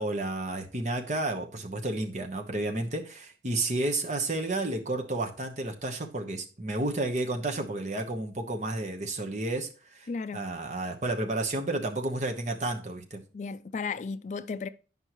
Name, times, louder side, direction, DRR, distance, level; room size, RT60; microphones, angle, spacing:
voice 1, 0.0-13.2, right 2 dB, 45° right, 1.1 m, -31 dB
voice 2, 10.1-10.4 13.3-14.7, left 4 dB, 40° left, 0.3 m, -34 dB
9.7 x 5.4 x 3.0 m
head